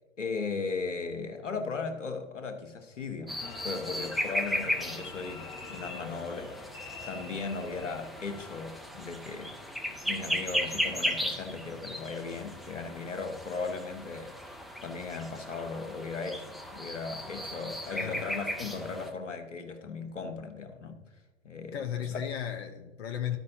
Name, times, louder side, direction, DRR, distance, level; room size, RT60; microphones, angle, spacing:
voice 1, 0.2-6.5 7.1-9.5 9.9-14.3 14.8-21.0 21.4-22.2, left 4 dB, 85° left, 1.3 m, -37 dB
sound 1, 3.3-19.1, equal, ahead, 0.3 m, -36 dB
sound 2, 3.4-8.6, left 4 dB, 15° left, 1.2 m, -46 dB
voice 2, 17.9-18.2 21.7-23.4, left 9 dB, 60° left, 0.9 m, -35 dB
14.0 x 5.4 x 2.7 m
figure-of-eight pair, 110°, 36 cm